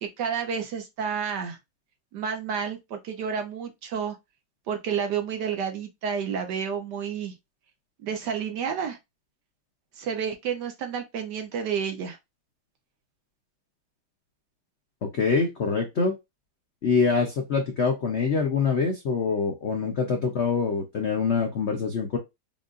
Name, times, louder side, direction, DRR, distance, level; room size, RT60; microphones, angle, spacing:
voice 1, 0.0-1.6 2.1-4.2 4.7-7.3 8.0-9.0 9.9-12.2 19.8-19.9, right 7 dB, 70° right, 1.1 m, -30 dB
voice 2, 15.1-16.1 16.8-22.2, left 5 dB, 85° left, 0.6 m, -25 dB
5.4 x 2.5 x 2.4 m
omnidirectional pair, 2.2 m